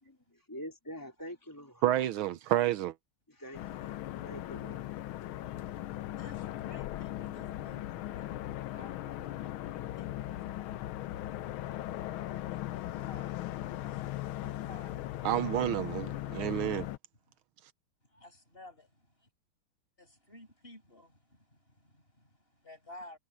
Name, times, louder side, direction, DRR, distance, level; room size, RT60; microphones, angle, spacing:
voice 1, 0.0-1.8 3.3-4.9, equal, 10° left, 3.4 m, -46 dB
voice 2, 1.8-2.9 15.2-16.9, right 13 dB, 80° right, 1.6 m, -29 dB
sound 1, 3.5-17.0, left 14 dB, 80° left, 1.6 m, -38 dB
voice 3, 6.2-10.9 12.2-15.9 18.0-19.3 20.0-23.2, left 1 dB, 25° left, 8.3 m, -55 dB
omnidirectional pair, 2.3 m